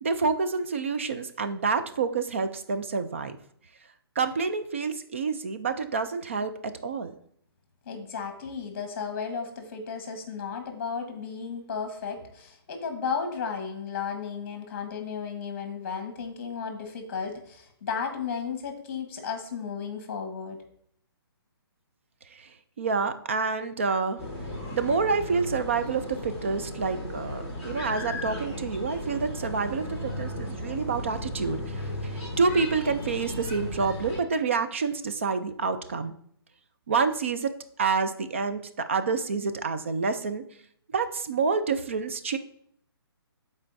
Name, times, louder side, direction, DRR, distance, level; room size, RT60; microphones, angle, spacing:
voice 1, 0.0-3.4 4.2-6.5 6.8-7.1 22.3-22.5 22.8-24.2 24.7-36.1 36.9-37.5 37.8-40.4 40.9-42.4, right 5 dB, 30° right, 10 dB, 0.4 m, -28 dB
voice 2, 7.8-20.6, left 6 dB, 30° left, 5 dB, 1.3 m, -34 dB
sound 1, 24.2-34.2, left 1 dB, 10° right, 1.2 m, -35 dB
12.0 x 4.3 x 2.6 m, 0.66 s
hypercardioid pair, 170°, 14 cm